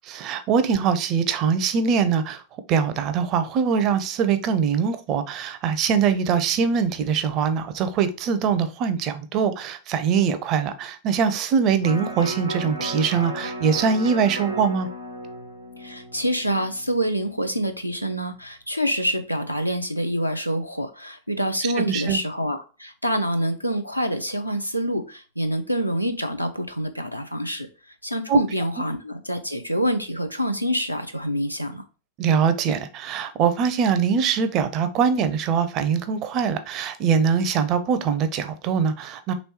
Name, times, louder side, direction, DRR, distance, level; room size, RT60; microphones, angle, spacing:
voice 1, 0.1-2.4 2.7-14.9 21.8-22.2 28.3-28.4 32.2-39.3, right 6 dB, 35° right, 0.5 m, -22 dB
Electric guitar, 11.8-18.0 18.4-18.5, right 1 dB, 80° right, 0.7 m, -35 dB
voice 2, 15.8-27.7 28.0-31.8, equal, 90° left, 0.4 m, -26 dB
3.1 x 3.1 x 4.2 m
figure-of-eight pair, 90°, 0 cm